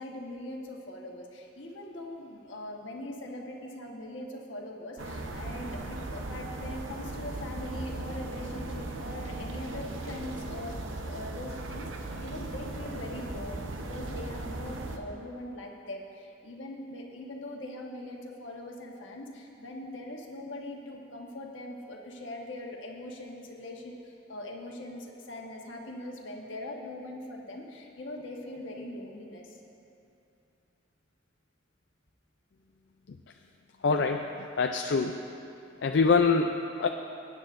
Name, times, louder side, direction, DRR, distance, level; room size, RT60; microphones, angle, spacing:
voice 1, 0.0-29.6, left 1 dB, 80° left, 0 dB, 1.3 m, -41 dB
sound 1, 5.0-15.0, right 2 dB, 85° right, 0.8 m, -38 dB
voice 2, 33.8-34.3 34.6-35.2 35.8-36.9, left 4 dB, 65° left, 4 dB, 0.4 m, -24 dB
20.5 x 9.7 x 2.6 m, 2.8 s
head